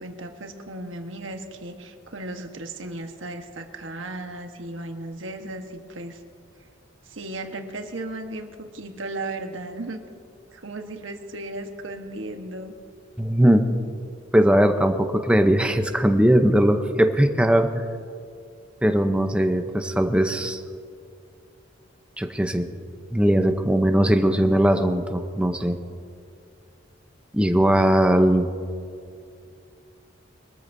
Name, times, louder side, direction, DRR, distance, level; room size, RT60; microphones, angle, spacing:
voice 1, 0.0-6.2 7.1-10.0 10.5-12.7, right 2 dB, 80° right, 5 dB, 1.3 m, -35 dB
voice 2, 13.2-13.7 14.3-17.8 18.8-20.6 22.2-22.7 23.1-25.8 27.3-28.5, equal, 5° right, 6 dB, 0.7 m, -19 dB
23.0 x 13.5 x 2.7 m, 2.3 s
head